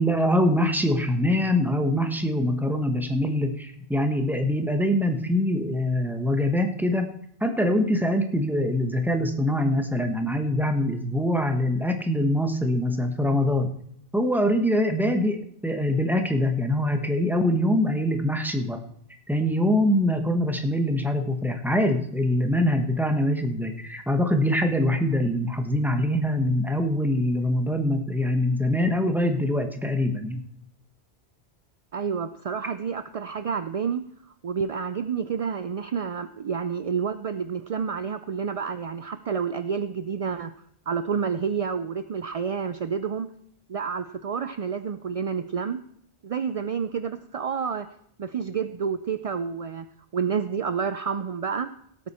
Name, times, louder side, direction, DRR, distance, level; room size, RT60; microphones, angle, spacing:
voice 1, 0.0-7.1 7.4-13.7 14.1-18.8 19.3-30.4, left 1 dB, ahead, 5 dB, 1.1 m, -24 dB
voice 2, 31.9-34.0 34.4-40.5 40.9-43.3 43.7-45.8 46.2-47.9 48.2-49.9 50.1-51.7, right 6 dB, 50° right, 11 dB, 0.4 m, -29 dB
17.5 x 8.4 x 4.3 m, 0.70 s
omnidirectional pair, 1.1 m